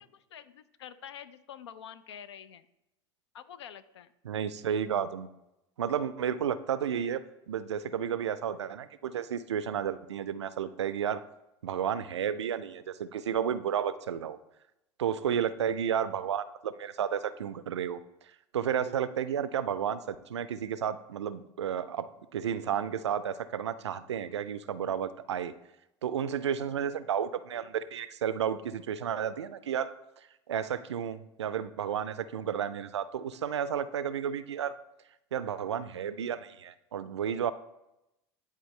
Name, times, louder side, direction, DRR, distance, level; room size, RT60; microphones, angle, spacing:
voice 1, 0.3-2.7 3.3-4.1 15.3-15.5, left 9 dB, 80° left, 15 dB, 0.4 m, -47 dB
voice 2, 4.2-5.3 5.8-7.2 7.5-11.2 11.6-14.4 15.0-18.0 18.5-25.5 26.0-34.7 35.3-37.5, right 8 dB, 85° right, 14 dB, 0.4 m, -32 dB
10.5 x 3.8 x 3.2 m, 0.89 s
hypercardioid pair, 80°, 14 cm